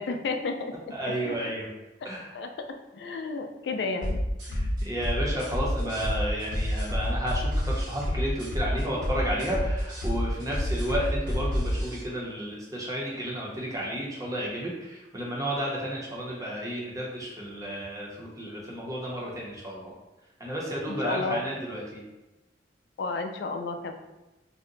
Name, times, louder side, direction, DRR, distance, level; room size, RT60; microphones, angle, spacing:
voice 1, 0.0-0.9 1.2-1.4 2.0-2.7 2.9-4.2 4.5-5.0 20.9-21.4 23.0-23.9, left 3 dB, 70° left, 5 dB, 0.3 m, -33 dB
voice 2, 0.9-1.7 2.0-2.3 4.6-19.9 20.4-22.0, equal, 20° right, -4 dB, 0.7 m, -32 dB
sound 1, 4.0-12.0, equal, 75° right, 1.2 m, -29 dB
2.7 x 2.1 x 3.8 m, 1.0 s
head